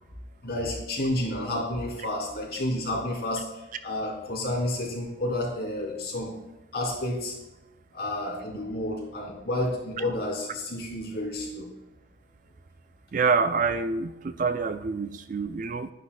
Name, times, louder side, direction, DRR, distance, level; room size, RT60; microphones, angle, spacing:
voice 1, 0.4-3.5 3.8-6.3 6.7-7.3 7.9-11.7, left 1 dB, 50° left, -3 dB, 3.0 m, -30 dB
voice 2, 13.1-15.9, right 4 dB, 40° right, 10 dB, 0.3 m, -26 dB
10.5 x 9.6 x 2.3 m, 0.95 s
head